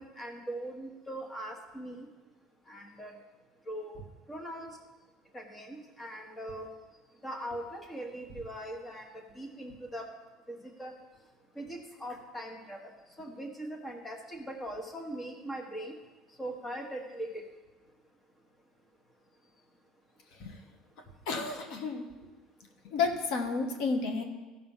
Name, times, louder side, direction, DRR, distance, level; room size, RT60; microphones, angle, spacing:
voice 1, 0.0-2.1 2.7-3.1 3.7-4.0 4.3-4.7 5.3-6.7 7.2-9.0 9.4-10.0 10.5-10.9 11.6-12.8 13.2-16.0 16.4-17.4, right 1 dB, 15° left, 3 dB, 1.3 m, -40 dB
voice 2, 21.3-22.0 22.9-24.2, left 4 dB, 70° left, 5 dB, 1.3 m, -31 dB
14.5 x 5.9 x 5.6 m, 1.3 s
cardioid pair, 145°, 0 cm